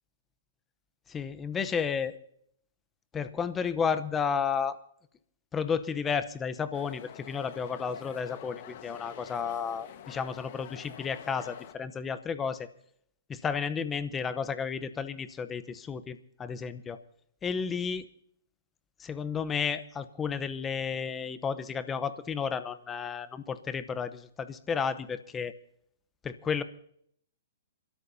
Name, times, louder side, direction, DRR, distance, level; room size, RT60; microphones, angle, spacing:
voice 1, 1.1-2.2 3.1-4.8 5.5-12.7 13.3-17.0 17.4-18.1 19.0-25.5 26.2-26.6, left 6 dB, 15° left, 13 dB, 0.8 m, -32 dB
sound 1, 6.7-11.7, left 10 dB, 50° left, 1.3 m, -47 dB
27.0 x 12.5 x 2.7 m, 0.68 s
hypercardioid pair, 140°, 0 cm